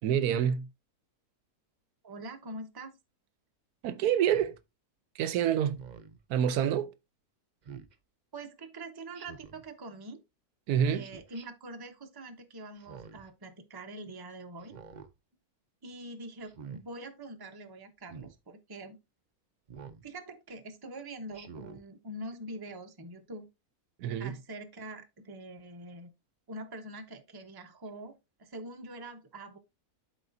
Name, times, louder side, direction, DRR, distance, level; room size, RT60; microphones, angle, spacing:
voice 1, 0.0-0.7 3.8-4.5 5.2-5.8 6.3-6.9 10.7-11.1 24.0-24.4, right 9 dB, 85° right, 1.1 m, -27 dB
voice 2, 2.0-3.0 8.3-10.2 10.8-14.7 15.8-19.0 20.0-23.5 24.2-26.1 26.5-29.6, right 1 dB, 20° right, 0.7 m, -44 dB
Speech synthesizer, 4.2-4.6 5.7-6.2 7.6-7.9 9.1-9.6 11.0-11.5 12.8-13.3 14.6-15.1 16.4-16.8 18.0-18.3 19.7-20.0 21.3-21.8, right 6 dB, 55° right, 0.5 m, -47 dB
12.0 x 4.1 x 2.7 m
omnidirectional pair, 1.6 m